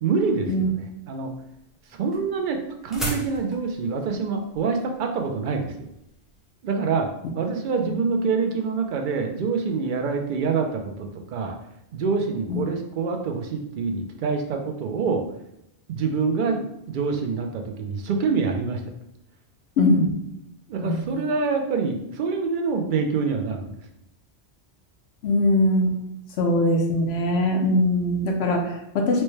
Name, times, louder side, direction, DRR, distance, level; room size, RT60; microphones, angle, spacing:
voice 1, 0.0-1.3 2.0-5.9 6.6-7.1 7.3-11.6 11.9-15.2 15.9-18.8 20.7-23.8, right 5 dB, 55° right, 3 dB, 0.6 m, -26 dB
sound 1, 1.2-6.4, right 1 dB, ahead, 0.6 m, -36 dB
voice 2, 19.8-20.1 20.8-21.0 25.2-26.0 26.4-29.2, left 1 dB, 70° left, 2 dB, 0.9 m, -21 dB
4.4 x 2.1 x 3.1 m, 0.80 s
omnidirectional pair, 1.2 m